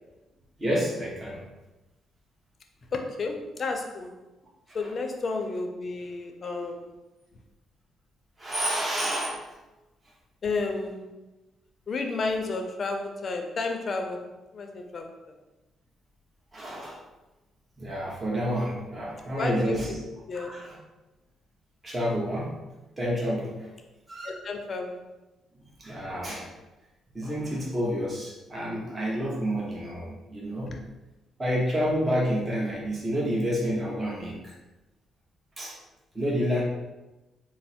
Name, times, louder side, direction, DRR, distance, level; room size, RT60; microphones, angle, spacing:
voice 1, 0.6-1.4 4.7-4.9 6.4-6.7 8.4-9.4 16.5-17.0 17.8-20.0 20.3-20.8 21.8-22.5 23.0-23.7 24.1-24.4 25.8-26.5 27.1-30.7 31.4-34.5 35.6-35.8 36.1-36.6, equal, 20° right, -5 dB, 1.0 m, -29 dB
voice 2, 2.9-4.1 4.7-6.9 10.4-11.1 11.9-15.1 19.4-20.0 20.3-20.5 24.2-25.0 30.7-30.8, left 3 dB, 45° left, 4 dB, 0.6 m, -32 dB
4.1 x 2.1 x 4.2 m, 1.1 s
cardioid pair, 90°, 0 cm